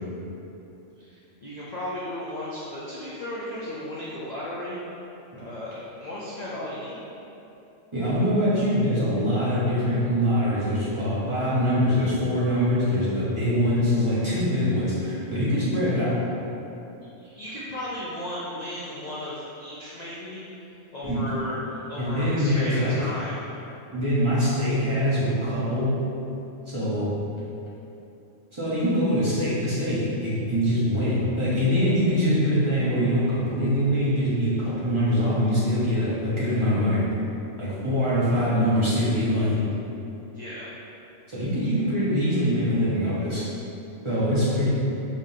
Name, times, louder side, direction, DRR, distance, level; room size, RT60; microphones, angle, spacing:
voice 1, 1.0-4.8 5.3-7.0 17.2-20.4 20.9-23.5 40.3-40.7, left 1 dB, 45° left, -8 dB, 0.5 m, -35 dB
voice 2, 7.9-16.2 21.0-21.3 22.0-23.0 23.9-26.0 26.7-27.1 28.5-37.0 37.6-39.6 41.3-43.5 44.0-44.7, equal, 25° right, -10 dB, 1.0 m, -23 dB
5.2 x 3.7 x 2.7 m, 2.9 s
omnidirectional pair, 1.3 m